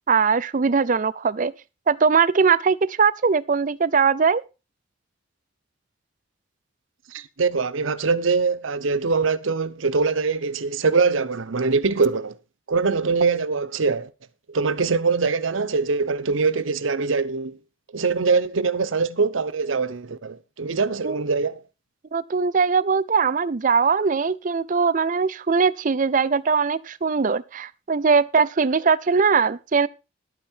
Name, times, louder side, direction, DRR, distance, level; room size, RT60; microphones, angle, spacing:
voice 1, 0.1-1.5 1.9-4.4 21.0-21.2 22.1-29.9, right 5 dB, 40° right, 0.5 m, -20 dB
voice 2, 7.1-12.4 12.7-14.1 14.5-17.6 17.9-21.6, right 4 dB, 85° right, 0.8 m, -23 dB
11.5 x 8.9 x 4.4 m
head